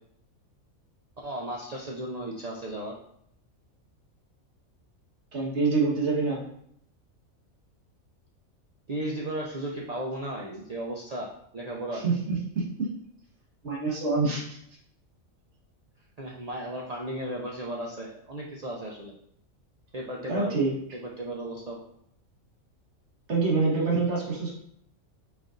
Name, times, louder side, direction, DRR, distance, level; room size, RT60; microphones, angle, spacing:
voice 1, 1.2-2.9 8.9-12.0 16.2-19.1 19.9-20.6 20.9-21.8, right 1 dB, 75° right, -2 dB, 0.3 m, -35 dB
voice 2, 5.3-6.4 11.9-12.9 13.6-14.6 20.3-20.7 23.3-24.5, right 4 dB, 55° right, -3 dB, 1.6 m, -26 dB
5.1 x 3.9 x 2.5 m, 0.69 s
omnidirectional pair, 1.4 m